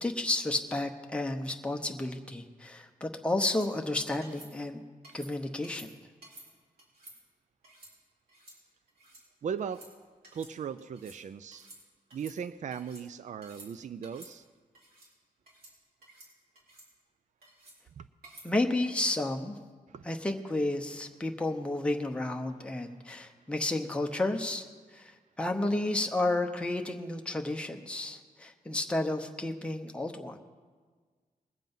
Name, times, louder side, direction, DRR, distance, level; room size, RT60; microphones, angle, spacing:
voice 1, 0.0-4.8 5.1-5.9 18.4-19.6 20.0-24.6 24.9-30.4, left 2 dB, 5° left, 3 dB, 0.8 m, -31 dB
sound 1, 3.4-3.7 4.2-4.5 5.0-5.3 5.6-5.9 6.2-6.5 6.8-7.2 7.6-7.9 8.3-8.6 8.9-9.2 9.6-9.9 10.2-10.5 10.8-11.2 11.5-11.8 12.1-13.0 13.4-13.7 14.0-14.3 14.7-15.1 15.5-15.7 16.0-16.3 16.6-16.9 17.4-17.8 18.2-18.5 18.9-19.1, right 1 dB, 85° right, 3.9 m, -53 dB
voice 2, 9.4-9.8 10.3-11.7 12.1-14.5 18.0-18.1 19.9-20.1, right 7 dB, 55° right, 13 dB, 0.4 m, -38 dB
21.0 x 7.5 x 5.4 m, 1.5 s
wide cardioid pair, 160°, 15 cm